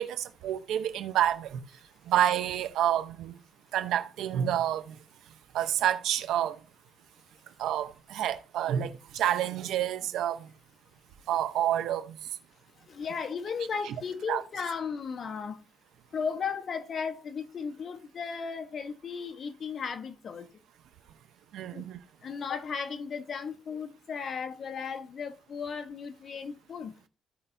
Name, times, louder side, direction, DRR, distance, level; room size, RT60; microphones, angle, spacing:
voice 1, 0.0-1.6 2.1-3.3 3.7-4.9 5.5-6.6 7.6-10.5 11.3-12.2 14.3-14.4 21.5-22.0, right 11 dB, 85° right, 0.9 m, -28 dB
voice 2, 12.9-15.6 16.1-20.5 21.7-21.8 22.2-27.0, left 6 dB, 50° left, 1.2 m, -35 dB
15.5 x 5.6 x 2.7 m
cardioid pair, 90°, 0 cm